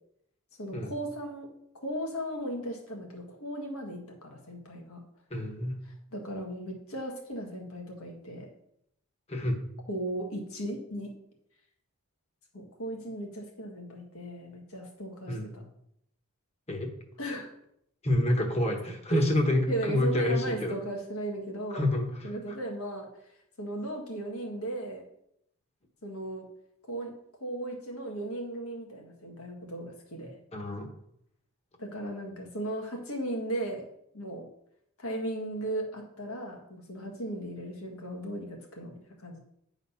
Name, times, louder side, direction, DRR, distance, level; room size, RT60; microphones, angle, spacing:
voice 1, 0.6-1.5 1.7-5.0 6.1-8.5 9.9-11.1 12.5-15.3 17.2-17.5 19.1-19.3 19.7-21.8 22.2-23.1 23.6-25.0 26.0-26.4 26.9-27.1 27.4-30.4 31.8-33.8 34.1-34.5 35.0-39.4, right 1 dB, 75° left, 2 dB, 1.7 m, -36 dB
voice 2, 5.3-5.8 9.3-9.6 15.3-15.5 16.7-16.9 18.0-20.8 21.7-22.6 30.5-30.9, left 1 dB, 30° left, 4 dB, 1.1 m, -28 dB
9.8 x 4.0 x 5.7 m, 0.75 s
head